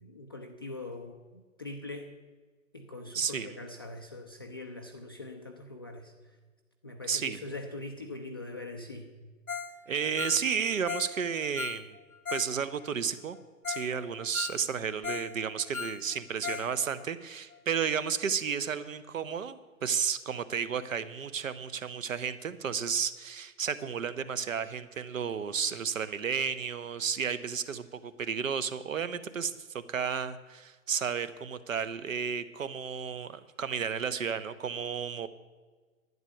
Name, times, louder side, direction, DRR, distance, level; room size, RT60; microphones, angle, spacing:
voice 1, 0.0-2.1 2.7-6.4 6.8-9.1, left 2 dB, 20° left, 1 dB, 0.3 m, -42 dB
voice 2, 3.1-3.5 7.0-7.4 9.9-12.0 12.3-13.4 13.7-35.3, right 7 dB, 65° right, 14 dB, 1.0 m, -32 dB
Ringtone, 9.5-9.8 10.0-12.5 12.8-12.9 13.3-13.4 13.6-13.9 14.2-15.3 15.6-16.7 17.0-17.1 17.5-17.6, left 6 dB, 85° left, 1.1 m, -38 dB
11.0 x 9.3 x 7.8 m, 1.4 s
figure-of-eight pair, 125°, 42 cm